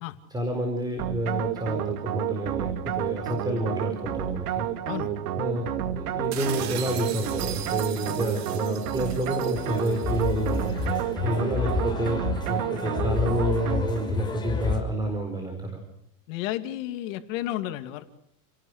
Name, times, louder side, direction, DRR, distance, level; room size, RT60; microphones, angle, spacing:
voice 1, 0.3-4.7 5.4-11.0 11.2-15.8, right 1 dB, 10° right, 5 dB, 4.5 m, -29 dB
sound 1, 1.0-14.2, right 10 dB, 85° right, 2.6 m, -30 dB
sound 2, 6.3-11.0, right 11 dB, 40° right, 2.6 m, -39 dB
sound 3, 9.5-14.8, left 5 dB, 10° left, 5.8 m, -30 dB
voice 2, 16.3-18.1, left 14 dB, 60° left, 9 dB, 2.4 m, -32 dB
30.0 x 18.5 x 6.5 m, 0.72 s
supercardioid pair, 145°, 44 cm